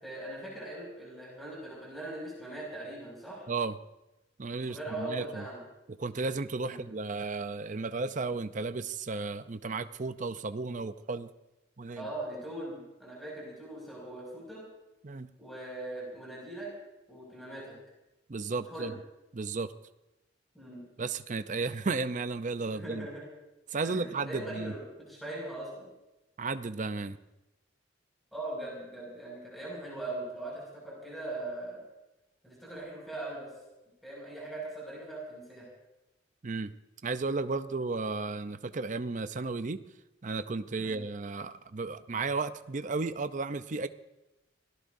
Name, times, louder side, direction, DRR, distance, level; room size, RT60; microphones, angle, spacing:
voice 1, 0.0-3.4 4.6-5.6 6.6-6.8 12.0-14.6 15.4-16.7 17.1-17.8 18.5-18.9 20.5-20.8 22.7-23.2 23.8-25.9 28.3-31.8 32.4-33.5 34.0-35.7 40.8-41.0, right 1 dB, ahead, -4 dB, 5.8 m, -40 dB
voice 2, 4.4-5.4 6.0-11.3 11.8-12.1 15.0-15.3 18.3-18.9 19.3-19.7 21.0-23.1 23.7-24.7 26.4-27.2 36.4-36.7 37.0-39.9 40.2-43.9, right 3 dB, 40° right, 11 dB, 0.6 m, -34 dB
26.5 x 18.0 x 2.7 m, 0.98 s
head